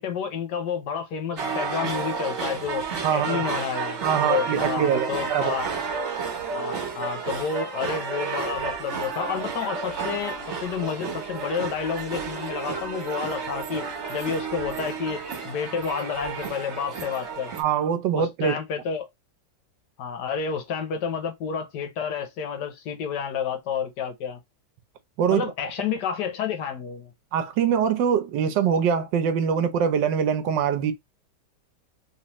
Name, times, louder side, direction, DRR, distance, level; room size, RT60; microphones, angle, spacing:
voice 1, 0.0-2.9 3.1-5.7 6.5-17.5 18.1-19.1 20.0-24.4 25.3-27.1, left 7 dB, 75° left, 1.4 m, -30 dB
sound 1, 1.4-17.6, right 5 dB, 45° right, 1.2 m, -31 dB
voice 2, 3.0-3.4 4.0-5.5 17.6-18.5 25.2-25.4 27.3-30.9, right 7 dB, 85° right, 1.4 m, -23 dB
3.3 x 3.2 x 2.9 m
omnidirectional pair, 1.9 m